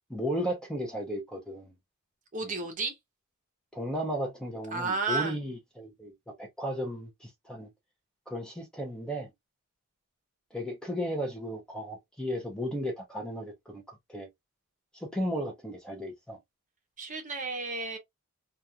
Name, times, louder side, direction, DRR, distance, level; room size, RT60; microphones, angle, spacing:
voice 1, 0.1-1.7 2.4-2.6 3.7-6.1 6.4-7.7 8.3-9.3 10.5-14.3 14.9-16.4, equal, 5° left, 0.6 m, -35 dB
voice 2, 2.3-2.9 4.7-5.3 17.0-18.0, right 4 dB, 35° right, 0.7 m, -32 dB
2.4 x 2.4 x 2.8 m
head